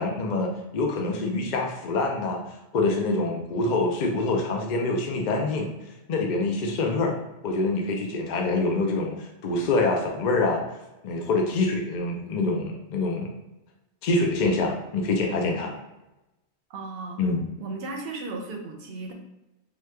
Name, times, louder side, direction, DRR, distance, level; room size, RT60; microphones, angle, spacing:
voice 1, 0.0-2.4 2.7-5.7 6.1-7.2 7.4-10.6 11.0-13.3 14.0-15.8 17.2-17.4, left 3 dB, 55° left, 1 dB, 0.5 m, -25 dB
voice 2, 16.7-17.2 17.6-19.1, right 3 dB, 65° right, 3 dB, 0.8 m, -35 dB
3.0 x 2.3 x 3.1 m, 0.97 s
omnidirectional pair, 1.1 m